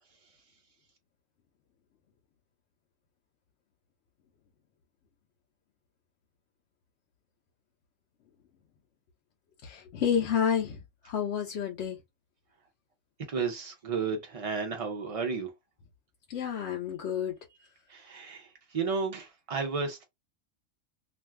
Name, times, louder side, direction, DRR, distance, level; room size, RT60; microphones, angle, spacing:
voice 1, 9.6-12.0 16.3-17.3, left 8 dB, 65° left, 0.9 m, -30 dB
voice 2, 13.2-15.5 17.9-20.0, right 5 dB, 65° right, 0.3 m, -33 dB
2.6 x 2.3 x 3.2 m
omnidirectional pair, 1.4 m